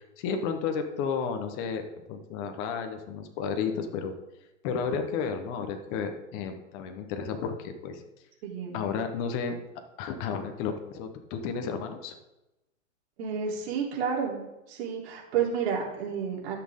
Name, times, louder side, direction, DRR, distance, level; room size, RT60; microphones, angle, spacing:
voice 1, 0.0-1.8 2.1-4.1 4.6-8.0 8.7-9.6 10.0-12.1, left 6 dB, 35° left, 6 dB, 1.2 m, -32 dB
voice 2, 8.4-8.8 13.2-14.4 14.7-16.6, right 7 dB, 55° right, -2 dB, 3.6 m, -30 dB
14.5 x 6.5 x 3.8 m, 0.96 s
hypercardioid pair, 140°, 39 cm